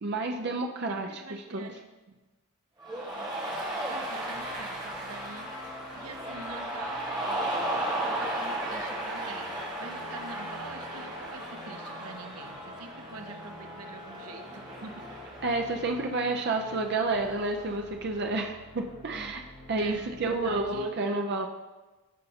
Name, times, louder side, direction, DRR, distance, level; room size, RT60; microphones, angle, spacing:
voice 1, 0.0-1.7 15.4-19.4 19.7-21.5, right 3 dB, 50° right, 2 dB, 0.5 m, -30 dB
voice 2, 0.9-1.8 2.1-2.2 3.8-9.5 9.8-15.1 19.1-19.3 19.8-21.3, right 3 dB, 85° right, 6 dB, 0.8 m, -45 dB
Cheering, 2.8-17.6, right 1 dB, 20° right, 1.3 m, -36 dB
sound 1, 4.3-20.9, left 3 dB, 80° left, 1.1 m, -47 dB
14.5 x 5.4 x 2.8 m, 1.2 s
head